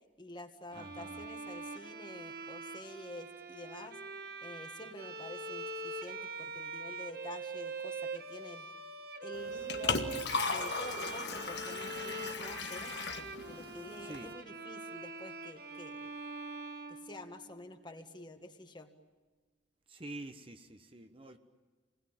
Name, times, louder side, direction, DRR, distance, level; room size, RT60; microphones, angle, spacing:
voice 1, 0.2-4.0 4.4-8.7 9.2-10.0 10.3-12.9 13.5-16.1 16.9-18.9, left 1 dB, 25° left, 6 dB, 1.6 m, -49 dB
voice 2, 0.7-1.2 14.0-14.3 19.9-21.4, right 1 dB, 30° right, 7 dB, 1.1 m, -47 dB
Bowed string instrument, 0.7-17.7, right 3 dB, 55° right, 1.6 m, -43 dB
Liquid, 9.3-14.3, left 4 dB, 65° left, 1.7 m, -37 dB
28.5 x 20.5 x 9.0 m, 1.4 s
head